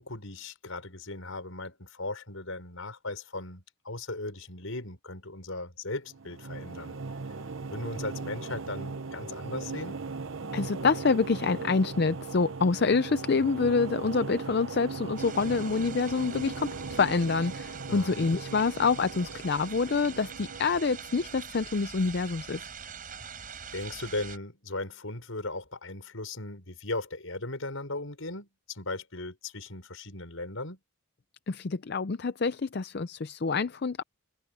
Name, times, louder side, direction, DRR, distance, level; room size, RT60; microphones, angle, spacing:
voice 1, 0.0-6.9 7.7-10.0 17.9-18.2 23.7-30.8, left 2 dB, 70° left, 5.7 m, -37 dB
sound 1, 6.1-21.4, right 4 dB, 70° right, 0.9 m, -39 dB
voice 2, 10.5-22.7 31.5-34.0, left 4 dB, 50° left, 0.5 m, -27 dB
sound 2, 15.1-24.4, right 6 dB, 40° right, 5.8 m, -44 dB
head